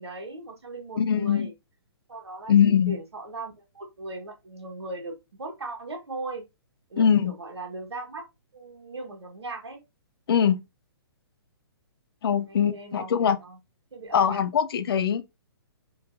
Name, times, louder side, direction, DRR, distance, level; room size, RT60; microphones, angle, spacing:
voice 1, 0.0-1.5 2.1-6.4 6.9-8.2 8.5-9.8 12.5-13.6 13.9-14.4, right 2 dB, 85° right, 1.2 m, -38 dB
voice 2, 1.0-1.5 2.5-3.0 7.0-7.3 10.3-10.6 12.2-13.4 14.1-15.2, left 8 dB, 65° left, 0.6 m, -22 dB
4.6 x 2.6 x 2.5 m
hypercardioid pair, 135°, 14 cm